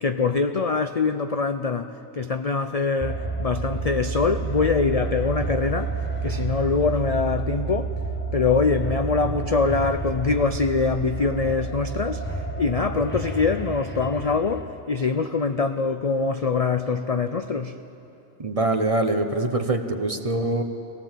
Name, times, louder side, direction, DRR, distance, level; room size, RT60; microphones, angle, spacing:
voice 1, 0.0-6.0 6.2-7.9 8.3-12.2 12.6-17.7, left 4 dB, 45° left, 8 dB, 0.5 m, -24 dB
sound 1, 3.0-14.6, right 4 dB, 10° left, 1.0 m, -30 dB
voice 2, 18.4-20.6, right 2 dB, 30° right, 6 dB, 1.1 m, -24 dB
25.0 x 18.0 x 7.4 m, 2.8 s
omnidirectional pair, 1.3 m